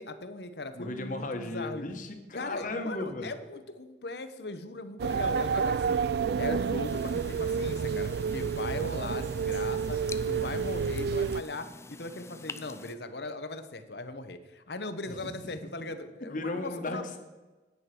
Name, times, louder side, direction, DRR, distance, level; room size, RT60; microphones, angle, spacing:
voice 1, 0.0-1.8 2.3-6.1 6.4-10.0 10.3-17.1, left 2 dB, 65° left, 10 dB, 1.1 m, -39 dB
voice 2, 0.7-3.3 15.1-15.2 16.3-17.2, left 2 dB, 50° left, 5 dB, 1.6 m, -35 dB
sound 1, 5.0-11.4, right 6 dB, 65° right, 0.3 m, -29 dB
sound 2, 6.8-12.9, left 3 dB, 15° left, 0.5 m, -47 dB
9.9 x 9.4 x 6.1 m, 1.2 s
head